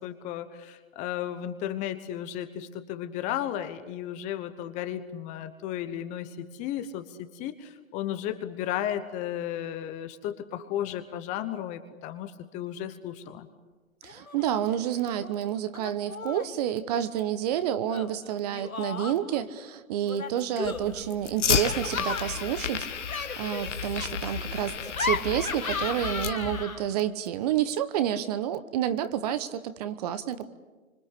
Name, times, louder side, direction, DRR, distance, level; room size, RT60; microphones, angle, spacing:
voice 1, 0.0-13.5, left 11 dB, 20° left, 10 dB, 1.0 m, -34 dB
Laughter, 14.0-14.5 14.7-15.3 15.7-16.6 17.9-19.4 20.1-27.0, left 4 dB, 90° left, 2.0 m, -36 dB
voice 2, 14.0-22.9 23.4-30.5, right 10 dB, 30° right, 13 dB, 1.2 m, -29 dB
Fire, 20.6-26.6, left 7 dB, 60° left, 1.9 m, -32 dB
26.5 x 25.5 x 8.5 m, 1.2 s
figure-of-eight pair, 135°, 40 cm